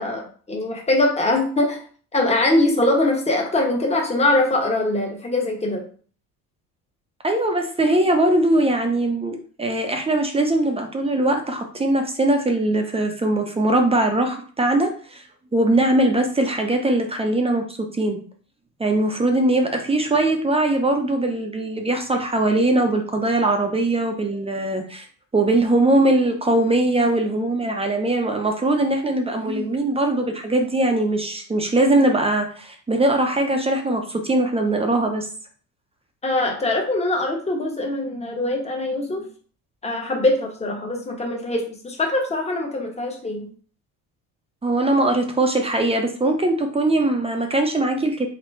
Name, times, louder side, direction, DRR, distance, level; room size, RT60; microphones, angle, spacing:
voice 1, 0.0-1.8 2.1-5.8 36.2-39.3 39.8-43.5, left 2 dB, 20° left, 1 dB, 1.3 m, -22 dB
voice 2, 7.2-15.2 15.5-17.6 18.0-18.2 18.8-25.1 25.3-35.3 44.6-48.3, right 2 dB, 15° right, 3 dB, 0.7 m, -21 dB
3.6 x 3.2 x 4.5 m, 0.43 s
cardioid pair, 110°, 36 cm